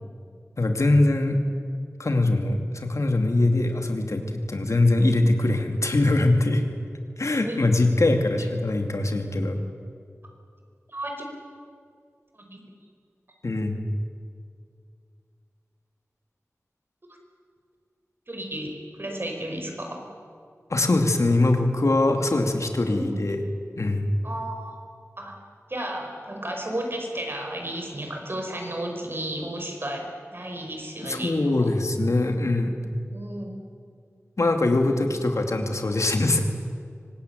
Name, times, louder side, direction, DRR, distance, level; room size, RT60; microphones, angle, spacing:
voice 1, 0.6-1.4 2.0-6.6 7.2-9.6 13.4-13.8 20.7-23.4 23.8-24.1 31.0-32.7 34.4-36.4, left 2 dB, 75° left, 4 dB, 2.6 m, -22 dB
voice 2, 10.9-11.3 12.4-12.6 18.3-20.0 22.9-23.1 24.2-24.7 25.2-25.3 25.7-31.7 33.1-33.5 34.9-35.0, right 1 dB, 45° right, 2 dB, 5.2 m, -33 dB
24.5 x 19.5 x 9.3 m, 2.2 s
wide cardioid pair, 60°, 5 cm